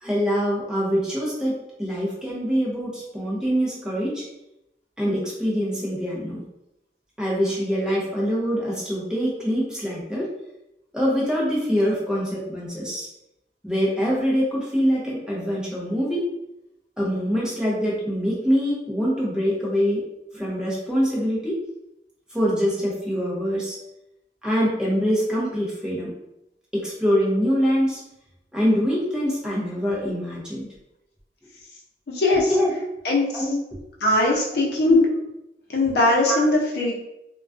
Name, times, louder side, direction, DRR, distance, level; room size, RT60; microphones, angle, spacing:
voice 1, 0.0-4.2 5.0-6.4 7.2-10.3 10.9-13.1 13.6-16.3 17.0-20.0 20.3-21.6 22.3-23.7 24.4-26.1 26.7-28.0 28.5-30.7 32.5-32.7 33.3-33.5 34.5-35.0 36.3-36.5, equal, 5° right, -6 dB, 0.6 m, -24 dB
voice 2, 32.1-32.5 33.0-33.4 34.0-35.1 35.7-36.9, left 2 dB, 65° left, -2 dB, 0.6 m, -20 dB
2.2 x 2.2 x 2.4 m, 0.86 s
head